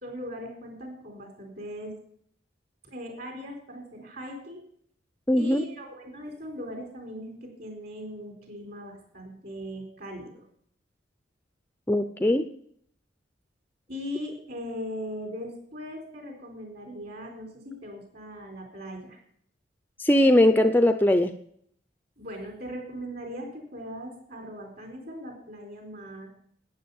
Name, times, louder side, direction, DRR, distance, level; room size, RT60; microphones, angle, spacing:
voice 1, 0.0-2.0 2.8-4.6 5.3-10.4 13.9-19.2 22.2-26.3, equal, 50° right, 3 dB, 4.1 m, -39 dB
voice 2, 5.3-5.6 11.9-12.5 20.0-21.3, left 1 dB, 10° left, 9 dB, 0.5 m, -20 dB
12.0 x 9.1 x 7.1 m, 0.65 s
head